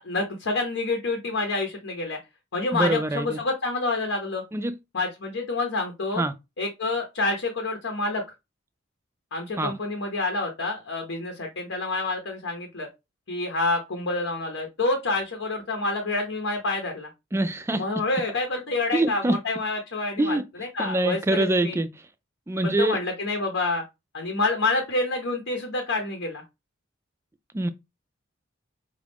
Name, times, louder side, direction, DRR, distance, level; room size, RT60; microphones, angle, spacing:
voice 1, 0.0-2.2 2.5-4.4 4.9-6.2 6.6-8.2 9.3-12.9 13.3-17.1 17.7-21.8 22.6-23.8 24.1-26.4, left 3 dB, 65° left, 0.9 m, -28 dB
voice 2, 2.7-3.4 4.5-4.7 6.2-6.3 9.6-9.7 17.3-17.8 18.9-19.4 20.2-20.4 20.8-21.9 22.5-23.0 27.5-27.7, right 2 dB, 15° right, 0.3 m, -24 dB
5.1 x 2.4 x 3.4 m
head